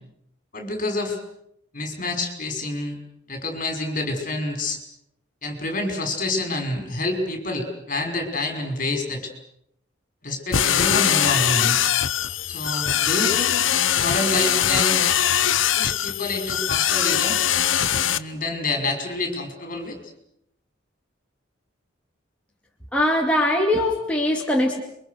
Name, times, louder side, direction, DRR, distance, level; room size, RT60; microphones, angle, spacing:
voice 1, 0.5-1.2 1.7-3.0 3.3-4.8 5.4-9.3 10.2-11.9 12.5-13.6 13.9-15.0 15.8-17.4 17.9-20.0, left 2 dB, 45° left, 5 dB, 5.7 m, -27 dB
sound 1, 10.5-18.2, left 10 dB, 90° left, 1.0 m, -21 dB
voice 2, 22.9-24.8, left 1 dB, 5° left, -1 dB, 2.5 m, -21 dB
28.5 x 24.0 x 6.6 m, 0.77 s
head